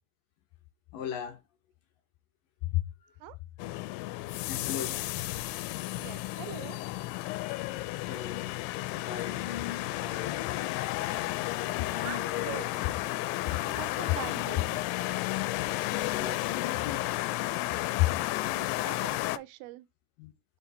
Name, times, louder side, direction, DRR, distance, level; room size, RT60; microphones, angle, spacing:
voice 1, 0.9-1.4 2.7-3.1 4.5-5.0 8.0-8.5 8.9-10.8 11.4-12.7 13.5-13.7 16.0-17.0 18.0-18.1 20.2-20.3, left 13 dB, 70° left, 2.3 m, -35 dB
sound 1, 3.6-19.4, left 18 dB, 90° left, 2.6 m, -33 dB
voice 2, 5.9-6.8 12.0-12.8 13.7-14.8 18.4-19.9, right 15 dB, 85° right, 2.4 m, -43 dB
5.7 x 4.9 x 4.0 m
omnidirectional pair, 4.6 m